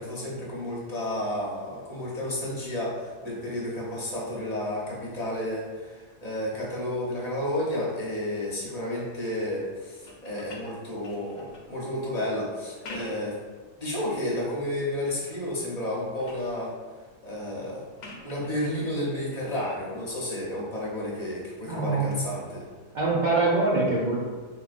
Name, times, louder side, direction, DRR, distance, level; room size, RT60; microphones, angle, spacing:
voice 1, 0.0-13.4 13.8-16.7 17.2-17.8 18.2-22.6, left 1 dB, 35° left, -5 dB, 0.9 m, -31 dB
sound 1, 10.0-11.7 12.6-13.4 13.9-14.5 15.0-15.5 15.8-16.5 18.0-18.6 20.3-20.4, left 2 dB, 90° left, 0.9 m, -46 dB
voice 2, 21.7-22.2 22.9-24.2, right 3 dB, 50° right, -6 dB, 0.6 m, -24 dB
4.0 x 2.9 x 2.4 m, 1.4 s
omnidirectional pair, 1.2 m